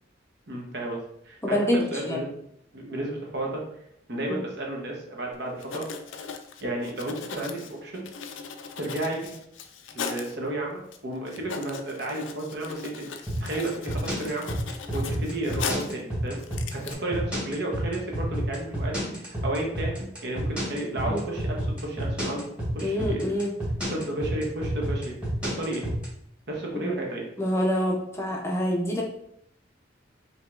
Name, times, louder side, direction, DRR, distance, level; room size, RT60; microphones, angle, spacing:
voice 1, 0.5-2.3 2.7-3.6 4.1-5.8 6.6-8.0 8.8-9.3 9.9-14.5 14.9-16.4 16.7-19.1 19.4-22.4 22.7-23.2 23.9-25.1 25.4-25.8 26.5-27.2, right 1 dB, 60° right, -1 dB, 0.9 m, -32 dB
voice 2, 1.4-2.2 4.3-4.4 21.0-21.2 22.8-23.5 26.8-27.0 27.4-29.0, equal, 15° left, -2 dB, 0.5 m, -26 dB
Writing, 5.6-10.4 10.9-11.0 11.3-16.0 16.4-16.9, left 6 dB, 85° left, 0.4 m, -38 dB
sound 1, 13.3-26.1, right 1 dB, 5° right, 1.3 m, -30 dB
5.0 x 2.8 x 2.4 m, 0.72 s
head